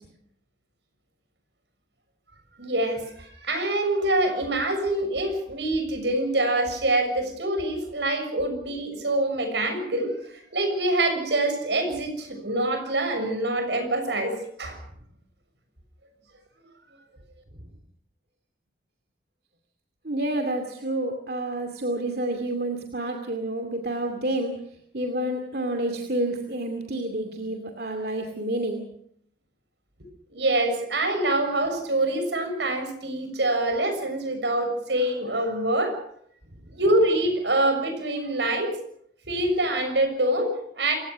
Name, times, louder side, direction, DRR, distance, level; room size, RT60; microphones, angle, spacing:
voice 1, 2.6-14.8 30.3-36.0 36.7-38.8 39.3-40.9, right 1 dB, 85° right, 7 dB, 6.8 m, -25 dB
voice 2, 20.0-24.6 24.9-28.8, right 1 dB, 60° right, 4 dB, 2.5 m, -29 dB
27.5 x 17.0 x 6.3 m, 0.67 s
head